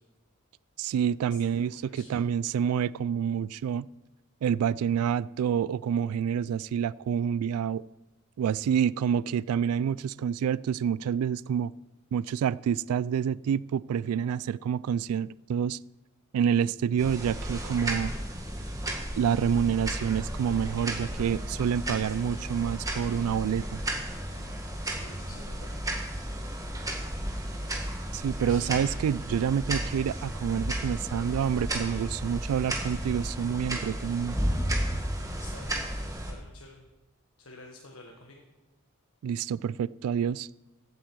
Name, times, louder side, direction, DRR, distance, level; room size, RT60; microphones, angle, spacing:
voice 1, 0.8-3.9 4.4-7.8 8.4-11.7 12.1-15.8 16.3-18.1 19.2-23.8 28.1-34.4 39.2-40.5, right 8 dB, 85° right, 18 dB, 0.3 m, -28 dB
voice 2, 1.7-2.1 24.8-25.9 28.5-28.8 35.3-35.8 36.2-36.9 37.4-38.4, left 3 dB, 80° left, 1 dB, 1.4 m, -49 dB
sound 1, 17.0-36.3, right 1 dB, 15° right, 1.9 m, -33 dB
15.5 x 8.7 x 4.6 m, 1.1 s
head